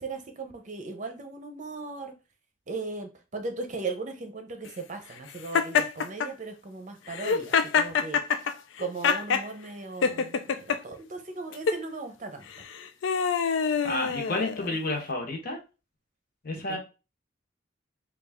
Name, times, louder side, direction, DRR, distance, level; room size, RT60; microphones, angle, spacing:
voice 1, 0.0-2.1 2.7-8.4 8.8-12.6 16.7-16.8, right 3 dB, 40° right, 5 dB, 0.6 m, -37 dB
Laughter, 5.5-6.3 7.1-9.5 10.0-10.8 11.5-11.8 12.6-14.8, left 6 dB, 90° left, 0.4 m, -26 dB
voice 2, 13.8-15.6 16.4-16.8, left 2 dB, 55° left, 2 dB, 1.0 m, -30 dB
3.4 x 2.4 x 3.4 m, 0.30 s
head